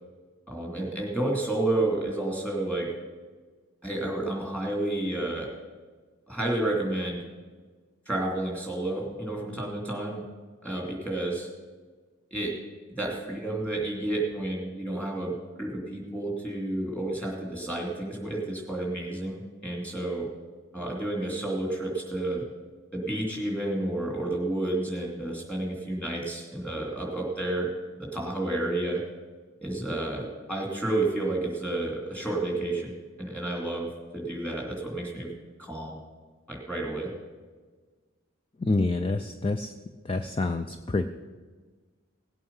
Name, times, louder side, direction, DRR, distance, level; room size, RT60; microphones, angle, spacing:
voice 1, 0.5-2.9 3.8-5.5 6.3-7.2 8.1-10.2 10.6-11.5 12.3-12.5 12.9-15.3 15.6-20.3 20.7-22.4 22.9-27.7 28.0-29.0 29.6-32.9 33.2-33.9 34.1-35.3 35.6-36.0 36.5-37.1, right 2 dB, 5° left, -1 dB, 2.8 m, -30 dB
voice 2, 38.6-39.7 40.0-41.1, left 3 dB, 25° left, 8 dB, 0.4 m, -27 dB
17.5 x 8.3 x 5.6 m, 1.4 s
head